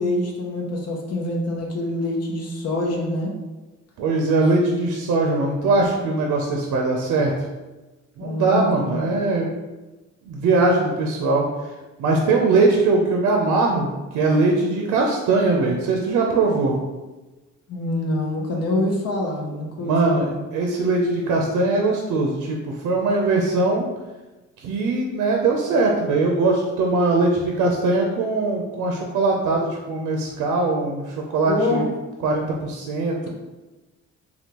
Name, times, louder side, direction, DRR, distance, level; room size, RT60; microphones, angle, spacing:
voice 1, 0.0-3.3 8.2-9.0 17.7-20.4 31.5-31.8, left 1 dB, 55° left, -1 dB, 0.8 m, -25 dB
voice 2, 4.0-7.3 8.2-9.5 10.3-11.5 12.0-13.9 14.1-16.8 19.8-23.9 24.6-31.8 32.2-33.3, right 3 dB, 75° right, 0 dB, 0.5 m, -21 dB
3.5 x 2.3 x 2.9 m, 1.1 s
cardioid pair, 90°, 30 cm